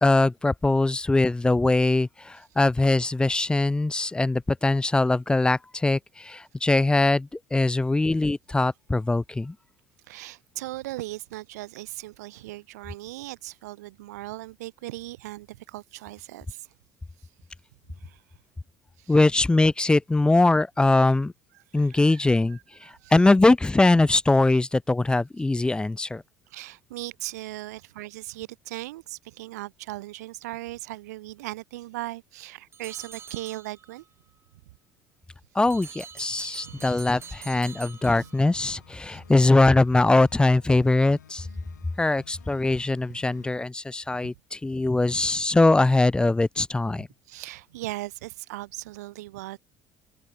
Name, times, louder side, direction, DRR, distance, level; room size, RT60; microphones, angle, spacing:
voice 1, 0.0-9.5 19.1-21.3 21.7-26.2 35.5-41.5 42.0-47.1, left 2 dB, 10° left, 0.4 m, -22 dB
voice 2, 10.1-16.7 18.0-18.2 19.0-19.1 21.7-23.1 26.5-34.0 36.6-37.0 39.1-39.2 44.2-44.3 47.3-49.6, right 18 dB, 70° right, 1.2 m, -38 dB
sound 1, 32.7-34.1 35.7-38.7, right 6 dB, 25° right, 1.2 m, -45 dB
sound 2, 36.3-43.6, left 8 dB, 80° left, 1.9 m, -54 dB
open air
figure-of-eight pair, 60°, 9 cm